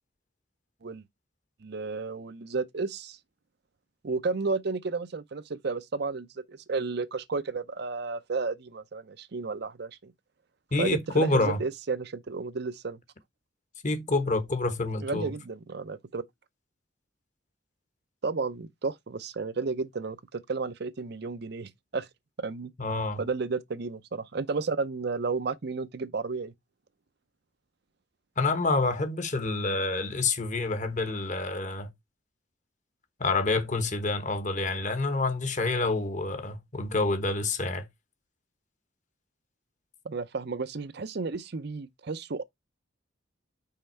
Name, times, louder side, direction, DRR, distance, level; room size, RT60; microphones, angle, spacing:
voice 1, 1.6-3.2 4.0-10.1 10.8-13.0 15.0-16.2 18.2-22.1 22.4-22.7 23.2-26.5 40.0-42.4, right 4 dB, 55° right, 0.6 m, -32 dB
voice 2, 10.7-11.6 13.8-15.3 22.8-23.2 28.4-31.9 33.2-37.9, left 3 dB, 40° left, 1.1 m, -27 dB
5.6 x 4.3 x 4.4 m
head